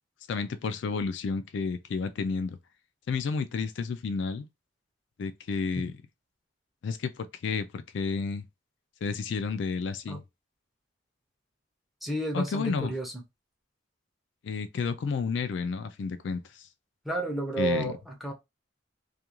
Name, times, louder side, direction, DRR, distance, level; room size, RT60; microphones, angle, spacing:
voice 1, 0.3-2.6 3.1-4.5 5.2-6.0 6.8-8.4 9.0-10.2 12.3-12.9 14.4-16.7 17.6-18.0, left 5 dB, 65° left, 0.3 m, -31 dB
voice 2, 12.0-13.1 17.1-18.3, right 2 dB, ahead, 0.5 m, -31 dB
2.4 x 2.3 x 2.9 m
head